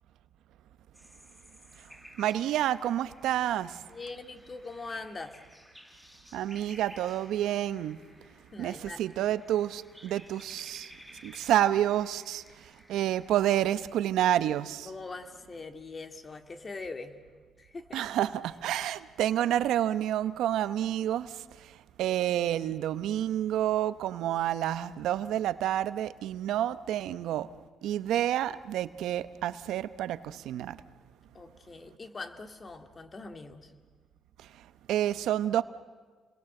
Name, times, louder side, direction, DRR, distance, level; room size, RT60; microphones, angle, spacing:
sound 1, 0.9-13.3, equal, 5° left, 7.6 m, -55 dB
voice 1, 2.2-3.8 6.3-8.0 8.6-10.9 11.2-12.4 12.9-14.9 17.9-21.7 22.0-27.5 27.8-30.8 34.9-35.6, right 12 dB, 85° right, 14 dB, 0.8 m, -29 dB
voice 2, 3.8-5.4 8.5-9.1 14.8-17.2 17.6-18.1 31.3-33.7, left 3 dB, 35° left, 7 dB, 2.2 m, -42 dB
29.5 x 21.5 x 7.8 m, 1.5 s
cardioid pair, 90°, 0 cm